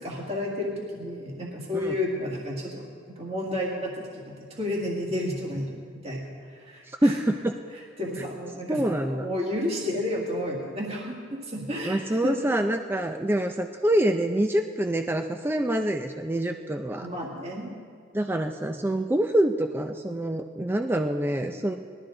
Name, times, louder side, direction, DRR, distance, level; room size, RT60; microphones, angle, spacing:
voice 1, 0.0-2.9 3.2-5.7 6.0-7.2 8.0-12.4 17.0-17.8, left 1 dB, 30° right, -2 dB, 1.8 m, -31 dB
voice 2, 6.9-7.6 8.7-9.3 11.8-17.1 18.1-21.8, right 1 dB, 10° right, 5 dB, 0.4 m, -26 dB
19.5 x 12.5 x 3.8 m, 2.1 s
head